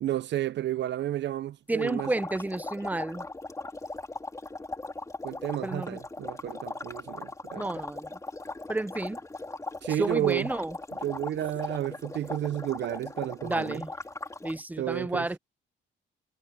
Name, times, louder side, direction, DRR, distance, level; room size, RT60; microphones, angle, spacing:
voice 1, 0.0-2.1 5.2-7.7 9.8-10.5 11.0-13.8 14.8-15.3, right 12 dB, 65° right, 0.6 m, -31 dB
voice 2, 1.7-3.3 5.6-6.0 7.6-8.2 8.7-9.2 9.9-10.8 13.4-13.9 14.4-15.4, right 2 dB, 10° right, 0.8 m, -31 dB
sound 1, 1.8-14.6, left 2 dB, 15° left, 2.8 m, -39 dB
cardioid pair, 90°, 20 cm